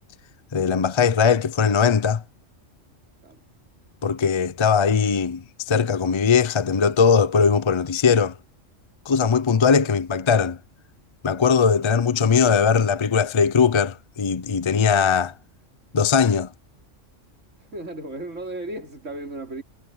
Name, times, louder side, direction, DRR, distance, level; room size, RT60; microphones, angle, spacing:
voice 1, 0.5-2.2 4.0-8.4 9.1-10.6 11.2-15.3 15.9-16.5, left 6 dB, 40° left, 0.4 m, -20 dB
voice 2, 17.6-19.6, right 2 dB, 75° right, 4.0 m, -35 dB
omnidirectional pair, 1.3 m